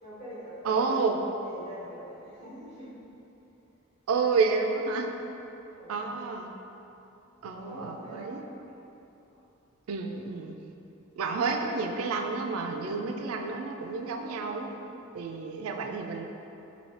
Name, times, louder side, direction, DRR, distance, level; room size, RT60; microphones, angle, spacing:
voice 1, 0.0-1.0 1.4-3.0 5.7-6.0 7.5-8.8, equal, 30° left, -10 dB, 1.2 m, -44 dB
voice 2, 0.6-1.2 4.1-5.1 5.9-6.5 7.4-8.4 9.9-10.5 11.2-14.8 15.1-16.3, right 4 dB, 85° right, 4 dB, 0.3 m, -30 dB
3.2 x 2.7 x 4.2 m, 2.9 s
head